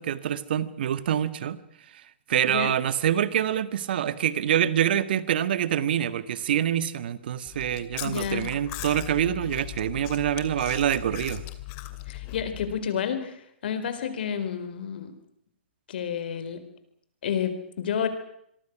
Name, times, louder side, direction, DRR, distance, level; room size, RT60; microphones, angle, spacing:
voice 1, 0.0-1.6 2.3-11.4, right 10 dB, 60° right, 14 dB, 1.7 m, -26 dB
Chewing mastication, 7.5-12.8, left 17 dB, 40° left, 2.4 m, -38 dB
voice 2, 8.0-8.5 12.1-15.1 15.9-16.6 17.2-18.1, left 8 dB, 60° left, 11 dB, 4.1 m, -30 dB
26.5 x 23.0 x 6.2 m, 0.71 s
hypercardioid pair, 125°, 6 cm